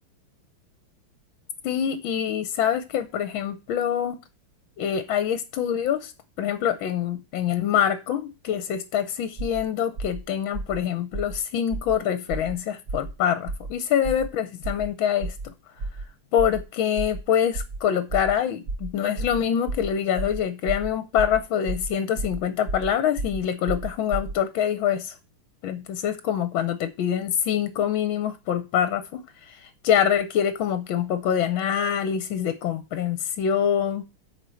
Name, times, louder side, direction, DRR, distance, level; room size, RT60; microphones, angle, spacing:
voice 1, 1.6-4.2 4.8-6.1 6.4-15.3 16.3-25.1 25.6-34.0, left 9 dB, 70° left, 1.5 m, -25 dB
sound 1, 9.4-9.6 10.0-10.2 10.5-10.8 11.1-11.4 11.7-11.9 12.3-12.5 12.9-13.1 13.5-13.7 14.0-14.3 14.6-14.9 15.2-15.4 15.8-16.0 16.4-16.6 16.9-17.2 17.5-17.8 18.1-18.3 18.7-18.9 19.2-19.4 19.7-19.9 20.2-20.4 20.7-20.9 21.2-21.4 21.7-21.9 22.2-22.4 22.7-22.9 23.2-23.4 23.7-24.3, right 3 dB, 55° right, 0.8 m, -31 dB
8.4 x 4.9 x 7.0 m
omnidirectional pair, 2.4 m